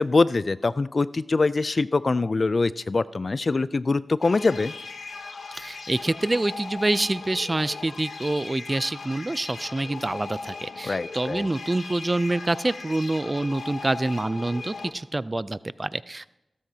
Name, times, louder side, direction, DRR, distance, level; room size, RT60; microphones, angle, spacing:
voice 1, 0.0-4.7 10.8-11.5, left 3 dB, 50° left, 17 dB, 0.4 m, -23 dB
sound 1, 4.2-14.9, left 4 dB, 75° left, 1.0 m, -38 dB
voice 2, 5.5-16.3, right 2 dB, 30° right, 17 dB, 0.4 m, -26 dB
16.0 x 13.5 x 2.8 m, 0.93 s
cardioid pair, 45°, 0 cm